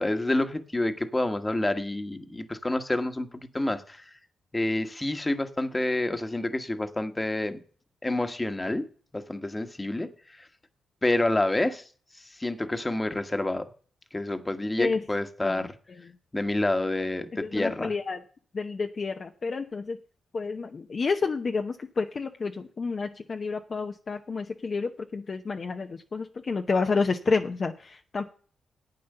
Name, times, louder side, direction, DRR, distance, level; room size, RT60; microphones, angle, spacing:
voice 1, 0.0-4.0 4.5-7.6 8.0-8.9 9.1-10.5 11.0-11.8 12.2-13.7 14.1-15.7 16.3-17.9, left 2 dB, 20° left, 8 dB, 1.3 m, -28 dB
voice 2, 15.4-16.1 17.3-18.2 18.5-20.0 20.3-28.3, left 4 dB, 45° left, 5 dB, 0.8 m, -30 dB
10.5 x 8.6 x 6.7 m, 0.43 s
cardioid pair, 80°, 0 cm